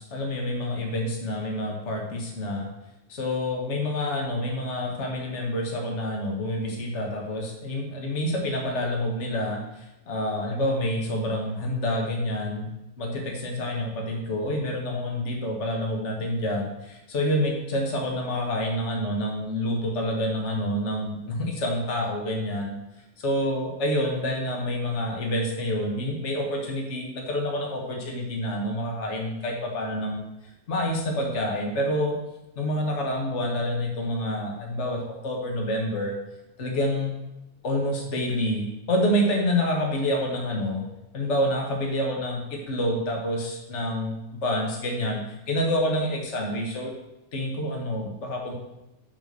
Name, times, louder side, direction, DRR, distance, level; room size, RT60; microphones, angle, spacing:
voice 1, 0.0-2.7 3.1-12.7 13.0-22.7 23.2-30.3 30.7-32.2 32.5-36.1 36.6-37.1 37.6-40.8 41.1-45.2 45.5-46.9 47.3-48.5, left 1 dB, 45° left, 0 dB, 0.8 m, -28 dB
5.9 x 5.8 x 6.8 m, 0.91 s
omnidirectional pair, 3.6 m